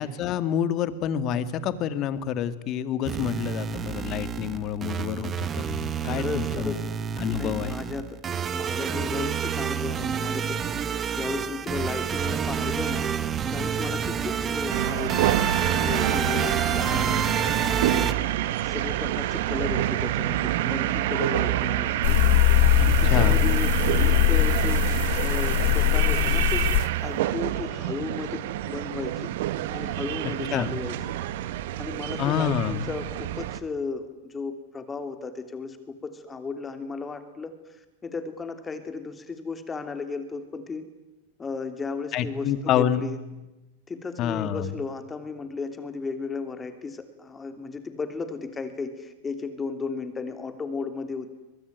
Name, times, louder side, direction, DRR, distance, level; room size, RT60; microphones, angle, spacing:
voice 1, 0.0-6.8 7.2-7.8 23.0-23.4 30.5-30.7 32.2-32.9 42.1-43.0 44.2-44.7, left 9 dB, 45° left, 13 dB, 2.0 m, -28 dB
sound 1, 3.0-18.1, right 7 dB, 25° right, 1.5 m, -29 dB
voice 2, 6.1-6.9 7.4-10.6 11.1-13.1 13.5-15.3 15.7-17.2 17.7-18.1 18.4-22.2 22.8-23.7 23.9-29.3 29.7-31.2 31.8-37.5 38.0-40.8 41.4-43.2 43.9-51.3, left 4 dB, 20° left, 9 dB, 3.1 m, -34 dB
sound 2, 14.7-33.6, right 13 dB, 70° right, 1.4 m, -27 dB
sound 3, 22.0-26.8, left 21 dB, 65° left, 1.1 m, -21 dB
23.5 x 21.5 x 9.5 m, 1.0 s
hypercardioid pair, 115°, 0 cm